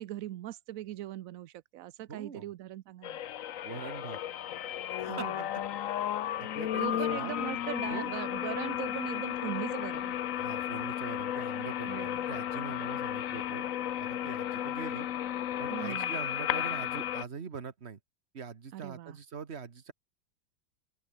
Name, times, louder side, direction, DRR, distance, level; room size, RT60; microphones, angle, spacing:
voice 1, 0.0-3.2 5.1-5.5 6.8-10.1 11.9-12.2 15.7-16.2 18.7-19.2, right 13 dB, 75° right, 0.8 m, -40 dB
voice 2, 2.1-2.5 3.6-4.2 5.0-5.4 6.4-7.3 7.9-8.2 10.4-13.7 14.0-15.1 15.6-18.0 18.3-19.9, right 6 dB, 35° right, 1.6 m, -43 dB
sound 1, 3.0-17.2, left 11 dB, 60° left, 0.9 m, -34 dB
open air
omnidirectional pair, 2.1 m